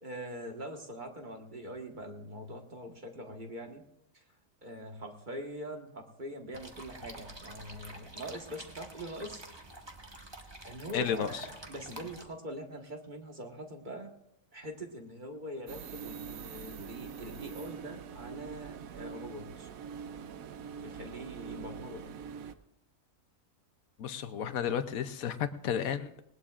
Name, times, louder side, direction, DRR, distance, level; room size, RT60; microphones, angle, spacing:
voice 1, 0.0-3.8 4.1-4.3 4.6-9.4 10.6-14.1 14.5-19.7 20.8-22.1, equal, 35° right, 1.6 m, -43 dB
sound 1, 6.5-12.2, right 1 dB, 20° right, 1.3 m, -48 dB
voice 2, 10.9-11.3 24.0-26.2, left 8 dB, 90° left, 1.2 m, -32 dB
sound 2, 15.7-22.5, right 7 dB, 85° right, 1.2 m, -44 dB
19.5 x 19.5 x 2.5 m
omnidirectional pair, 1.4 m